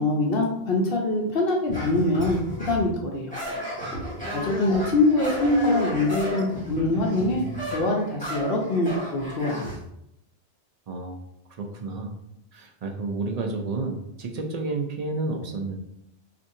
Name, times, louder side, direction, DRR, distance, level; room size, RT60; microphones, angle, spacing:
voice 1, 0.0-2.4 2.7-3.3 4.3-7.4 7.7-9.7, left 2 dB, 65° left, 0 dB, 0.8 m, -24 dB
sound 1, 1.7-2.9 3.3-9.8, equal, 5° left, 1.4 m, -33 dB
voice 2, 10.9-11.2 11.6-12.1 12.5-15.8, right 3 dB, 55° right, 2 dB, 0.5 m, -30 dB
4.3 x 2.5 x 2.7 m, 0.79 s
omnidirectional pair, 1.1 m